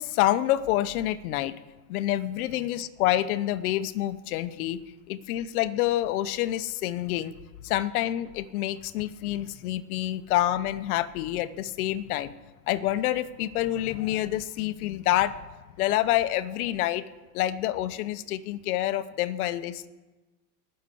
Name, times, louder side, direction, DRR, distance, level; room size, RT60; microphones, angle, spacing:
voice 1, 0.0-1.5 1.9-4.8 5.1-7.3 7.6-12.3 12.7-15.3 15.8-17.0 17.3-19.9, left 13 dB, 60° left, 13 dB, 0.9 m, -27 dB
20.0 x 6.7 x 8.4 m, 1.2 s
supercardioid pair, 155°, 49 cm